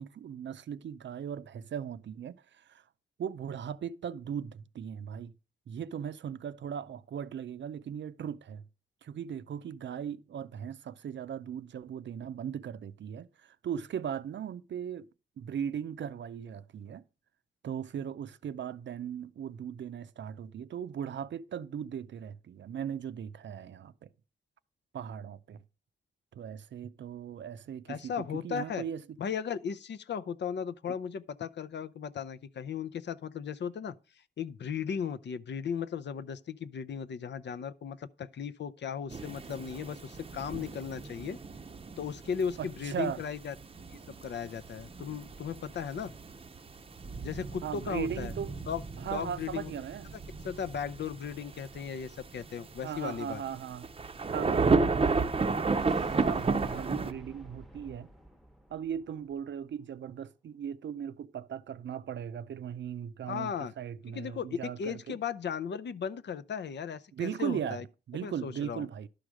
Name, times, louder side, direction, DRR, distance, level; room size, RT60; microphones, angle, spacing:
voice 1, 0.0-2.8 3.2-5.3 5.7-8.6 9.0-15.1 15.4-17.0 17.6-24.1 24.9-25.6 26.3-29.0 30.9-31.0 42.6-43.2 47.6-48.5 49.0-50.2 52.8-53.9 54.3-55.1 56.2-58.1 58.7-65.2 67.1-67.8 68.1-69.1, right 8 dB, 75° right, 0.5 m, -38 dB
voice 2, 27.9-28.8 29.2-33.9 34.4-41.4 42.0-43.5 44.2-46.1 47.2-48.3 48.7-48.8 49.1-49.7 50.4-53.4 63.3-63.7 64.1-67.8 68.2-68.9, left 7 dB, 70° left, 0.6 m, -36 dB
sound 1, 39.1-57.1, right 4 dB, 30° right, 0.6 m, -33 dB
sound 2, 55.8-59.7, equal, ahead, 0.9 m, -51 dB
11.5 x 4.9 x 6.2 m
wide cardioid pair, 160°, 19 cm